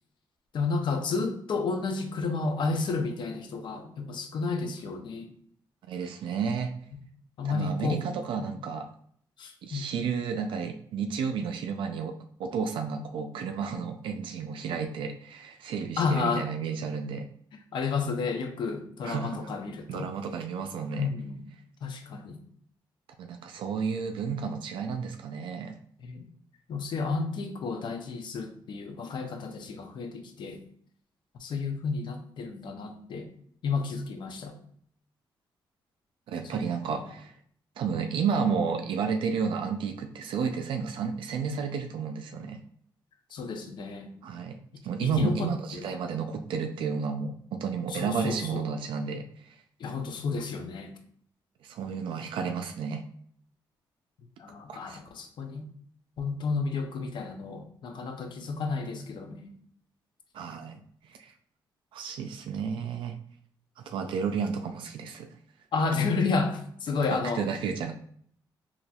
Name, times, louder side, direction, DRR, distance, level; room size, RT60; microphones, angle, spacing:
voice 1, 0.5-5.3 7.4-8.0 9.4-9.9 16.0-16.5 17.5-20.1 20.9-21.5 21.8-22.4 26.0-26.3 26.7-30.6 31.4-33.3 33.6-34.6 36.9-37.0 43.3-44.1 45.0-45.9 47.9-48.7 49.8-50.9 54.4-55.7 56.2-59.5 65.7-67.4, left 4 dB, 65° left, 5 dB, 0.6 m, -31 dB
voice 2, 5.9-6.7 7.4-8.9 9.6-17.3 19.0-19.5 19.9-21.1 23.2-25.8 36.3-37.3 37.8-42.6 44.2-44.6 44.8-49.3 51.6-53.0 54.7-55.0 60.3-60.8 61.1-61.3 61.9-63.2 63.9-65.3 67.1-67.9, right 6 dB, 75° right, 6 dB, 0.3 m, -32 dB
4.0 x 2.9 x 2.3 m, 0.62 s
cardioid pair, 90°, 9 cm